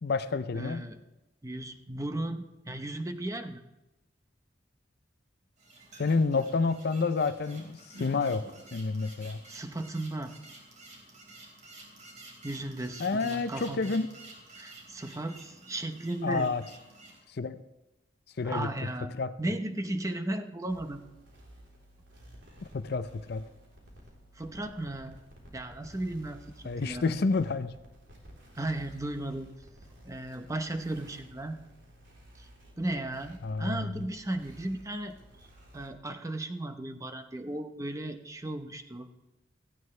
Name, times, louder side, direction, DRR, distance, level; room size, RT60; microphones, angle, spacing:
voice 1, 0.0-0.9 6.0-8.4 8.7-9.4 13.0-14.1 16.2-16.6 17.3-17.6 18.4-18.7 19.2-19.3 22.7-23.4 26.7-27.7 33.4-34.0, left 4 dB, 55° left, 12 dB, 0.5 m, -29 dB
voice 2, 0.5-1.0 1.4-3.6 9.5-10.3 12.4-13.9 14.6-16.5 18.4-19.1 19.4-21.0 24.4-25.2 25.5-27.1 28.5-29.5 30.0-31.6 32.4-32.5 32.8-35.2 35.7-39.1, right 1 dB, 15° right, 7 dB, 0.8 m, -35 dB
sound 1, 5.6-17.2, right 2 dB, 40° right, 3.8 m, -50 dB
sound 2, 20.7-35.9, equal, 75° right, 3.7 m, -54 dB
17.0 x 14.5 x 3.3 m, 1.0 s
head